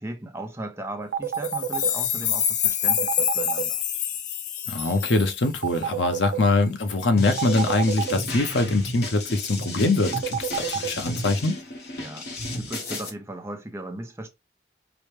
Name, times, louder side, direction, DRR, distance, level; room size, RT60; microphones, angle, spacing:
voice 1, 0.0-3.8 12.0-14.3, right 1 dB, 15° right, 0.7 m, -37 dB
sound 1, 1.1-1.9 2.9-3.6 5.6-6.4 7.4-8.1 10.1-10.9, right 10 dB, 70° right, 0.4 m, -27 dB
sound 2, 1.3-5.8, left 10 dB, 45° left, 0.4 m, -26 dB
voice 2, 4.7-11.6, left 2 dB, 80° left, 0.8 m, -23 dB
sound 3, 7.2-13.1, left 2 dB, 60° left, 1.1 m, -34 dB
4.8 x 2.1 x 3.2 m
head